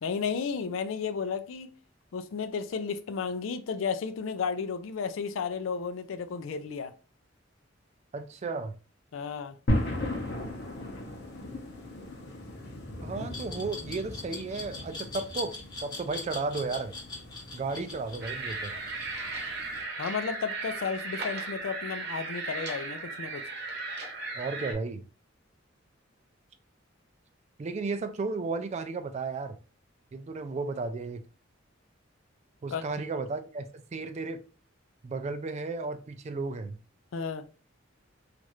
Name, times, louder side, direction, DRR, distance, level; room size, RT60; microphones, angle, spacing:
voice 1, 0.0-1.7 2.1-6.9 9.1-9.6 20.0-23.4 32.7-32.8 37.1-37.4, left 6 dB, 90° left, 0.4 m, -33 dB
voice 2, 8.1-8.8 13.0-16.9 17.5-18.8 24.3-25.1 27.6-29.6 30.1-31.3 32.6-34.4 35.0-36.8, right 3 dB, 35° right, 0.3 m, -34 dB
sound 1, 9.7-19.8, left 1 dB, 55° left, 0.7 m, -37 dB
Glass, 13.3-20.1, left 4 dB, 20° left, 0.7 m, -41 dB
sound 2, 18.2-24.7, right 3 dB, 60° right, 0.8 m, -36 dB
3.1 x 2.4 x 2.9 m
head